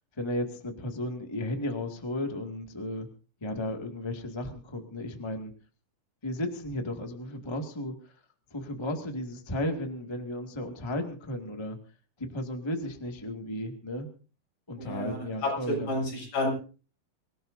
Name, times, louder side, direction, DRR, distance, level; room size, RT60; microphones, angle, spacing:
voice 1, 0.2-3.1 3.4-5.5 6.2-7.9 8.5-11.8 12.2-14.1 14.7-16.0, left 1 dB, 15° left, 3 dB, 1.0 m, -34 dB
voice 2, 14.8-16.5, left 1 dB, 65° left, -1 dB, 9.4 m, -31 dB
25.5 x 17.0 x 2.7 m, 0.37 s
omnidirectional pair, 4.4 m